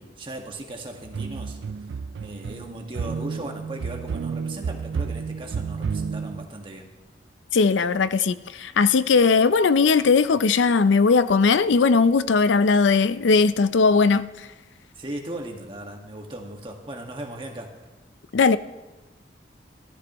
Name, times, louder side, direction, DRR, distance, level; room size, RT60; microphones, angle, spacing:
voice 1, 0.0-6.9 15.0-17.7, right 1 dB, 30° right, 1.6 m, -37 dB
sound 1, 0.9-6.5, right 5 dB, 70° right, 0.3 m, -31 dB
voice 2, 7.5-14.3 18.3-18.6, left 4 dB, 85° left, 0.5 m, -19 dB
17.5 x 13.0 x 3.0 m
head